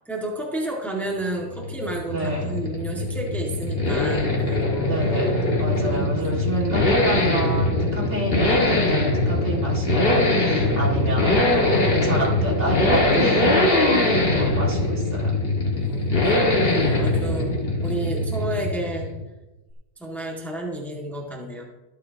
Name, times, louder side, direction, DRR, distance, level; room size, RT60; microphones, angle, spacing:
voice 1, 0.1-5.0 5.9-6.5 15.7-16.1 16.7-17.5 17.8-19.1 20.0-21.6, right 1 dB, ahead, -2 dB, 1.8 m, -31 dB
sound 1, 1.2-19.2, left 2 dB, 40° left, 2.0 m, -22 dB
voice 2, 2.1-2.5 4.9-15.4, right 1 dB, 45° right, -2 dB, 2.5 m, -28 dB
22.5 x 8.3 x 2.9 m, 1.1 s
omnidirectional pair, 1.6 m